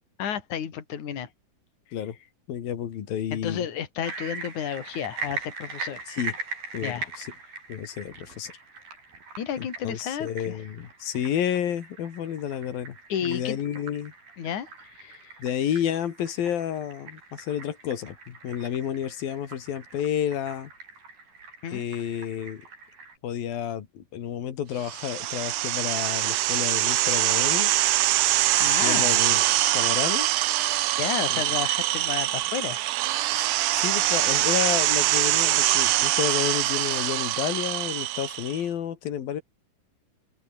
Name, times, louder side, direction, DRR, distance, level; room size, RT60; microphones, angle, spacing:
voice 1, 0.2-1.3 3.3-6.0 6.8-7.1 9.4-10.6 13.1-13.6 14.4-14.7 15.0-15.4 21.6-21.8 28.6-29.2 29.7-29.8 31.0-32.9, left 9 dB, 60° left, 4.0 m, -32 dB
voice 2, 2.5-3.7 6.1-6.3 6.7-7.3 7.7-8.5 9.6-14.1 15.4-20.7 21.7-22.7 23.2-27.7 28.8-30.3 31.3-31.4 33.3-33.5 33.7-39.4, left 9 dB, 90° left, 4.1 m, -30 dB
sound 1, 4.0-23.2, right 4 dB, 90° right, 9.8 m, -41 dB
sound 2, 24.8-38.6, right 16 dB, 70° right, 2.2 m, -24 dB
open air
omnidirectional pair, 4.0 m